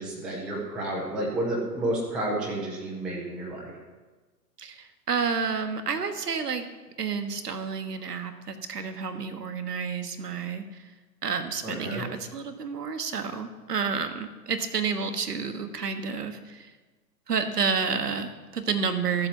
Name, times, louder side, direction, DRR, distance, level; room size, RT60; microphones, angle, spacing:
voice 1, 0.0-3.8 11.6-12.1, right 1 dB, ahead, -4 dB, 0.5 m, -31 dB
voice 2, 4.6-6.7 7.0-10.8 11.2-16.7 17.3-19.3, right 5 dB, 70° right, 7 dB, 1.3 m, -30 dB
14.0 x 7.6 x 4.6 m, 1.3 s
figure-of-eight pair, 115°, 49 cm